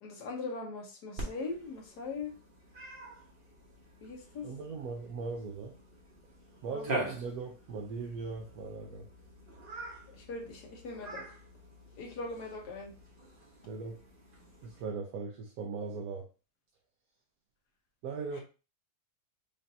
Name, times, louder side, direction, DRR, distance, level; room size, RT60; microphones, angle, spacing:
voice 1, 0.0-2.3 4.0-4.5 6.7-7.1 10.1-11.2 12.0-12.9, left 3 dB, 75° left, 0 dB, 1.6 m, -40 dB
Cat, 1.2-14.8, right 2 dB, 40° right, 1.1 m, -44 dB
voice 2, 4.4-5.7 6.6-9.1 13.6-14.0 14.6-16.3 18.0-18.4, right 4 dB, 70° right, 0 dB, 1.1 m, -39 dB
5.1 x 2.6 x 2.7 m, 0.33 s
omnidirectional pair, 1.7 m